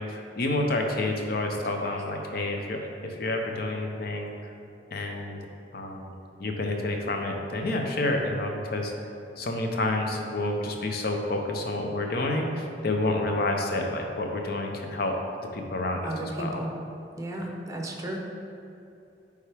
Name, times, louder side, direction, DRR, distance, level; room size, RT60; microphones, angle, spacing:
voice 1, 0.0-2.8 3.1-4.3 4.9-5.4 5.7-6.1 6.4-8.9 9.4-15.1 15.5-16.6, left 2 dB, 60° left, 2 dB, 0.7 m, -29 dB
voice 2, 16.0-16.7 17.2-18.2, right 1 dB, 20° right, 0 dB, 0.7 m, -33 dB
9.0 x 3.5 x 3.4 m, 2.7 s
head